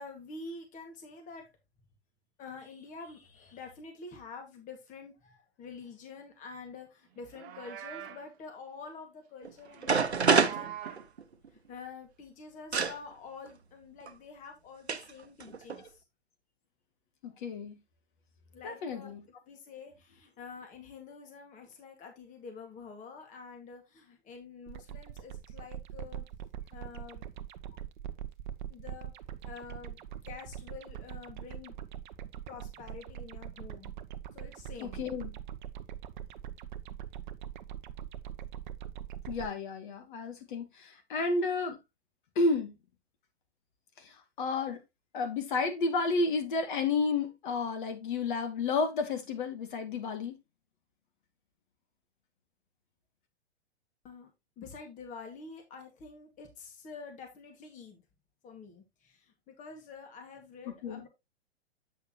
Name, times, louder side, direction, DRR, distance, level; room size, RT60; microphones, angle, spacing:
voice 1, 0.0-1.5 2.4-10.7 11.5-16.0 18.5-19.1 19.5-26.3 26.7-27.2 28.7-29.1 29.4-31.8 32.5-33.9 34.3-35.0 54.0-54.3 54.6-58.0 58.4-61.1, left 4 dB, 25° left, 2.0 m, -47 dB
Livestock farm animals working animals, 7.2-8.3 9.6-11.1, right 10 dB, 25° right, 1.1 m, -44 dB
sound 1, 9.4-9.5 9.8-11.5 12.7-13.0 14.1-14.2 14.9-15.1 15.4-15.9, right 5 dB, 80° right, 0.9 m, -27 dB
voice 2, 17.2-17.8 18.6-19.2 34.8-35.3 39.3-41.8 42.4-42.7 44.0-44.8 45.1-50.4 60.8-61.0, left 3 dB, 50° left, 2.2 m, -31 dB
sound 2, 24.7-39.5, right 10 dB, 45° right, 0.7 m, -43 dB
8.5 x 6.6 x 3.0 m
figure-of-eight pair, 110°, 33 cm